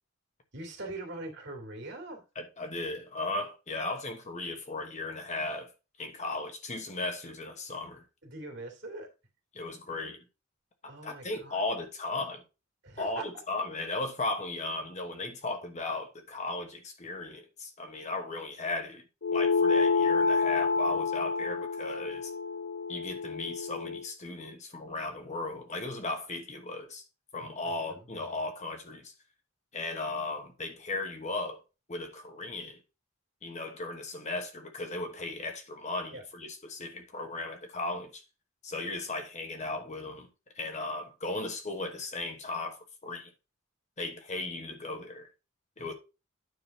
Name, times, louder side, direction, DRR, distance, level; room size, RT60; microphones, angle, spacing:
voice 1, 0.5-2.2 8.2-9.1 10.9-11.6 12.8-13.3 36.1-36.2 45.8-45.9, right 2 dB, 50° right, 2.5 m, -42 dB
voice 2, 2.3-5.7 6.0-8.0 9.5-10.2 10.8-12.4 13.0-19.0 19.3-22.3 22.9-27.0 27.3-29.1 29.7-31.6 31.9-32.8 33.4-38.2 38.6-40.3 40.5-43.3 44.0-45.3 45.8-45.9, left 2 dB, 35° left, 1.3 m, -36 dB
sound 1, 19.2-24.0, left 4 dB, 55° left, 1.0 m, -28 dB
9.5 x 3.9 x 5.8 m
head